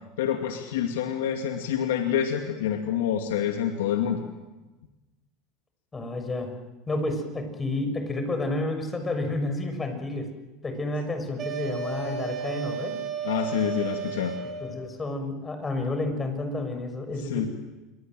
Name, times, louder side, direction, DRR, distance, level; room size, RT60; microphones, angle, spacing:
voice 1, 0.2-4.2 13.2-14.4 17.2-17.5, left 9 dB, 90° left, 4 dB, 2.3 m, -27 dB
voice 2, 5.9-6.5 6.9-10.3 10.6-13.0 14.6-17.5, left 2 dB, 20° left, 7 dB, 6.5 m, -30 dB
sound 1, 11.4-14.9, right 7 dB, 40° right, 4.5 m, -33 dB
27.5 x 23.5 x 7.8 m, 1.1 s
supercardioid pair, 105°, 0 cm